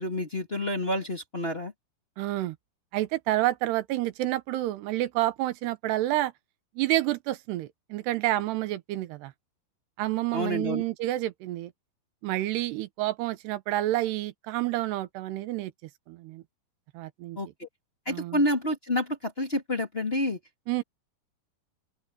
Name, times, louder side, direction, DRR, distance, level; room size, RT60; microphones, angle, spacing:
voice 1, 0.0-1.7 10.3-10.8 17.4-17.7 18.0-20.4, left 1 dB, 15° left, 2.4 m, -29 dB
voice 2, 2.2-2.6 2.9-6.3 6.8-9.3 10.0-11.7 12.2-15.7 16.1-16.4 16.9-17.4 18.1-18.4 20.7-20.8, right 16 dB, 85° right, 3.1 m, -29 dB
open air
omnidirectional pair, 4.7 m